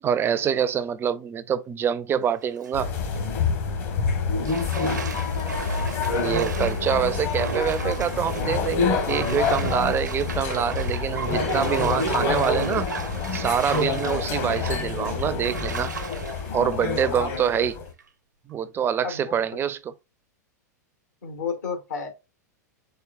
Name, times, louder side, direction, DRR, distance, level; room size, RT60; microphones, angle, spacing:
voice 1, 0.0-2.9 6.1-12.9 13.3-15.9 16.5-17.7 18.5-19.9, right 8 dB, 25° right, 0.4 m, -25 dB
Bathtub (filling or washing), 2.3-2.7 3.1-3.3 4.4-17.6 18.0-18.1, right 5 dB, 85° right, 0.6 m, -35 dB
sound 1, 2.7-17.9, left 5 dB, 50° left, 1.3 m, -27 dB
voice 2, 4.8-5.2 17.1-17.4 19.0-19.3 21.2-22.1, left 5 dB, 75° left, 1.4 m, -32 dB
4.5 x 3.3 x 2.3 m
hypercardioid pair, 100°, 10 cm